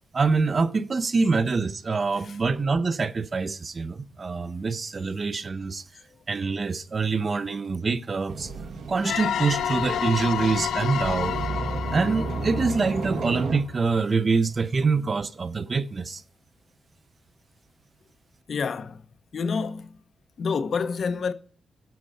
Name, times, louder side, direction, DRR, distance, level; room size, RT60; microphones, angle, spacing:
voice 1, 0.1-5.8 6.3-8.5 8.9-11.3 11.9-16.2, right 4 dB, 35° right, 0.4 m, -25 dB
sound 1, 8.3-13.6, right 3 dB, 85° right, 1.5 m, -32 dB
sound 2, 9.0-13.6, left 9 dB, 85° left, 0.3 m, -30 dB
voice 2, 18.5-19.0 19.3-19.9 20.4-21.3, left 5 dB, 50° left, 0.7 m, -28 dB
10.0 x 6.3 x 4.2 m
wide cardioid pair, 150°, 0 cm